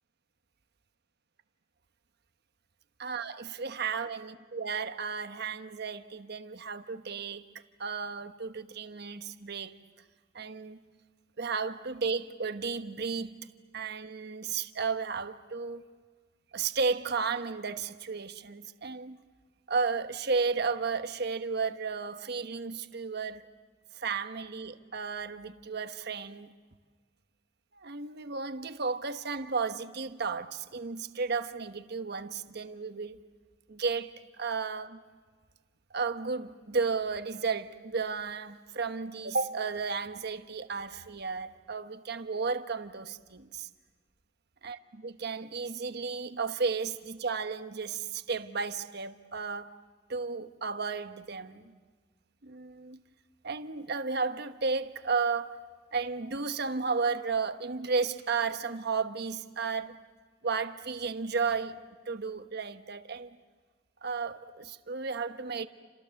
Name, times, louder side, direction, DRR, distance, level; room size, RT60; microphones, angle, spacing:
voice 1, 3.0-7.5 7.8-9.7 10.3-10.8 11.4-13.5 13.7-15.8 16.5-19.2 19.7-23.4 23.9-26.5 27.8-33.2 33.7-34.1 34.4-35.0 35.9-43.7 44.6-49.7 50.1-51.7 52.4-53.0 53.4-55.6 55.9-60.0 60.4-61.8 62.1-63.4 64.0-65.7, right 4 dB, 60° right, 1.2 m, -33 dB
29.5 x 27.5 x 7.1 m
head